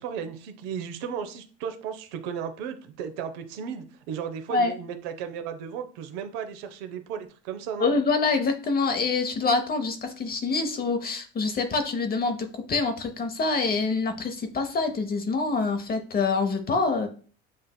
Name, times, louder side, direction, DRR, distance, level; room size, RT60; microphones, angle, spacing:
voice 1, 0.0-7.9, right 7 dB, 80° right, 8 dB, 0.7 m, -35 dB
voice 2, 7.8-17.1, left 4 dB, 30° left, 6 dB, 0.7 m, -26 dB
7.5 x 2.6 x 2.2 m, 0.40 s
supercardioid pair, 85°, 29 cm